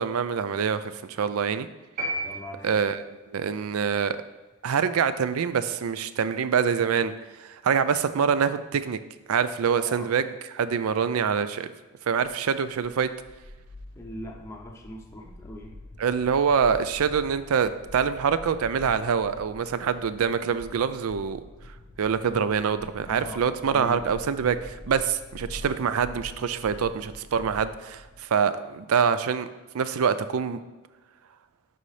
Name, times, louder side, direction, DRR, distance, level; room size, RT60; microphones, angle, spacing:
voice 1, 0.0-1.7 2.6-3.0 3.3-4.2 4.6-7.1 7.4-9.0 9.3-10.3 10.5-11.7 12.1-13.1 16.0-21.4 22.0-29.5 29.7-30.6, right 6 dB, 80° right, 13 dB, 0.4 m, -25 dB
sound 1, 2.0-3.2, right 1 dB, 40° right, 1.6 m, -33 dB
voice 2, 2.2-2.8 9.9-10.1 13.9-15.8 23.1-24.1, equal, 15° left, -1 dB, 0.6 m, -41 dB
sound 2, 12.2-28.2, left 1 dB, 85° left, 0.8 m, -45 dB
11.0 x 4.0 x 3.3 m, 1.2 s
head